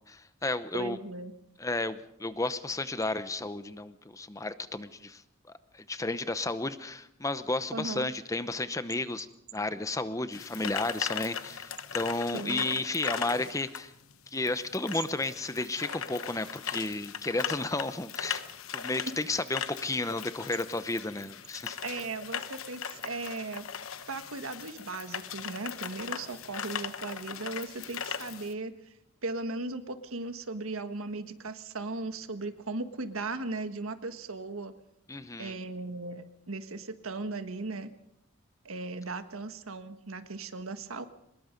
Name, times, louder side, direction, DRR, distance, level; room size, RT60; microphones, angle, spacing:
voice 1, 0.1-1.0 1.6-5.2 5.7-9.3 9.5-13.9 14.3-18.4 18.7-21.8 35.1-35.6, left 2 dB, 15° left, 12 dB, 0.8 m, -32 dB
voice 2, 0.7-1.3 7.7-8.1 12.3-12.7 21.8-23.7 24.1-28.7 29.2-34.7 35.4-37.9 38.6-41.0, right 3 dB, 90° right, 9 dB, 1.5 m, -37 dB
sound 1, 10.3-28.5, left 8 dB, 85° left, 1.1 m, -39 dB
24.0 x 21.0 x 5.3 m, 0.81 s
head